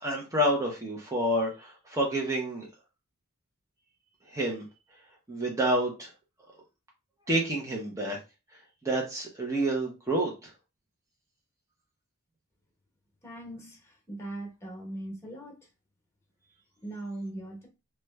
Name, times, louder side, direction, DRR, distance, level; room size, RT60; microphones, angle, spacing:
voice 1, 0.0-2.7 4.3-4.6 5.3-6.1 7.3-8.2 8.8-10.3, right 1 dB, 15° right, 0.6 m, -28 dB
voice 2, 13.2-15.6 16.8-17.7, right 1 dB, 10° left, 1.0 m, -40 dB
2.9 x 2.2 x 3.2 m
head